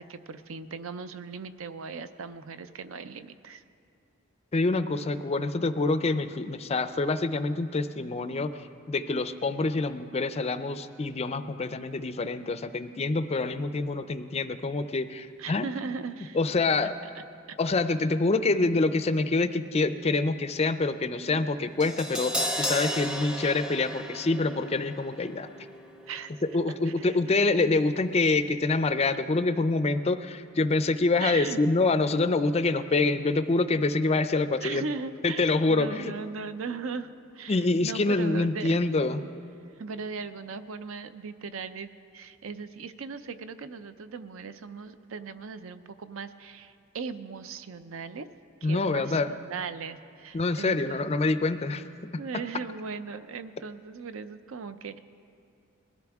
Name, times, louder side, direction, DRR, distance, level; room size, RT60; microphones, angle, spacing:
voice 1, 0.0-3.6 15.4-16.4 26.1-26.3 26.7-27.2 27.7-27.8 31.2-31.6 34.6-38.8 39.8-41.9 42.1-48.3 48.6-51.1 51.3-51.4 52.2-55.0, right 5 dB, 65° right, 12 dB, 0.5 m, -38 dB
voice 2, 4.5-8.5 8.9-15.7 16.4-16.9 17.6-25.5 26.4-34.8 35.2-36.1 37.5-39.2 48.6-49.3 50.3-51.8, left 3 dB, 30° left, 11 dB, 0.4 m, -26 dB
Crash cymbal, 21.8-28.0 28.2-28.4, equal, 5° right, 0.7 m, -35 dB
20.5 x 13.0 x 3.5 m, 2.4 s
head